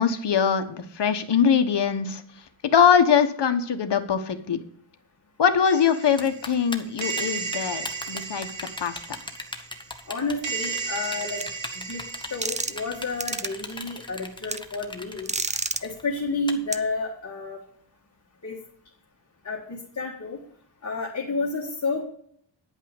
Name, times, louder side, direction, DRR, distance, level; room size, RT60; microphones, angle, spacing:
voice 1, 0.0-2.2 2.6-4.6 5.4-8.5 8.8-9.0, left 7 dB, 65° left, 8 dB, 1.2 m, -22 dB
sound 1, 5.7-13.8, right 5 dB, 75° right, 1.5 m, -35 dB
Typing, 6.2-16.5, left 2 dB, 10° left, 1.1 m, -37 dB
voice 2, 10.1-11.4 11.8-12.0 12.3-15.3 15.8-17.6 18.4-18.6 19.4-20.4 20.8-22.0, left 3 dB, 35° left, -3 dB, 2.0 m, -30 dB
sound 2, 11.4-11.5 12.4-12.9 13.2-13.5 14.5-14.6 15.3-15.8 16.7-16.8, right 3 dB, 15° right, 0.4 m, -28 dB
10.0 x 5.5 x 7.2 m, 0.64 s
wide cardioid pair, 120°, 45 cm